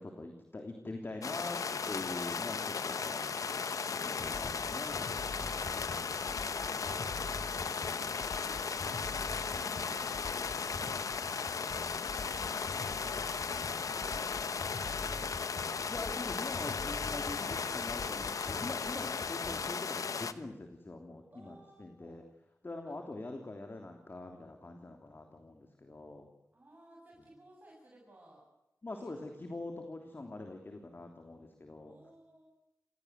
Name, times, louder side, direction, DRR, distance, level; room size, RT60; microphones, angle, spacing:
voice 1, 0.0-1.6 1.9-3.3 3.9-5.9 6.5-7.0 15.9-22.2 22.6-26.3 28.8-31.9, left 2 dB, 40° left, 4 dB, 3.2 m, -44 dB
sound 1, 1.2-20.3, left 5 dB, 85° left, 1.2 m, -36 dB
sound 2, 2.4-16.5, right 3 dB, 80° right, 6.9 m, -64 dB
sound 3, 4.2-19.6, left 2 dB, 60° left, 5.5 m, -46 dB
voice 2, 6.5-11.9 12.3-15.3 21.3-22.2 22.8-23.0 26.5-28.5 29.0-29.3 31.8-32.5, right 1 dB, 30° right, -3 dB, 7.1 m, -59 dB
28.5 x 17.5 x 8.2 m, 0.91 s
wide cardioid pair, 80°, 6 cm